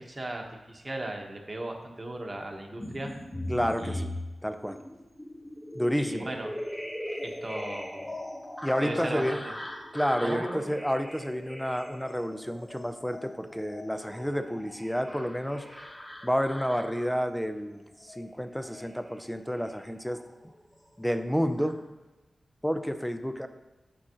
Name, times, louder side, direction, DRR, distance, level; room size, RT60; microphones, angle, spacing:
voice 1, 0.0-3.1 3.8-4.0 6.0-6.5 7.2-8.1 8.8-9.4 10.2-10.6, right 1 dB, 30° right, 2 dB, 1.0 m, -36 dB
sound 1, 2.8-20.5 20.9-21.7, left 1 dB, 20° left, 1.3 m, -40 dB
voice 2, 3.5-4.1 4.4-4.8 5.7-6.3 8.6-9.4 9.9-15.7 16.2-20.2 21.0-21.8 22.6-23.5, equal, ahead, 8 dB, 0.5 m, -30 dB
8.0 x 6.1 x 2.9 m, 1.1 s
wide cardioid pair, 95°, 0 cm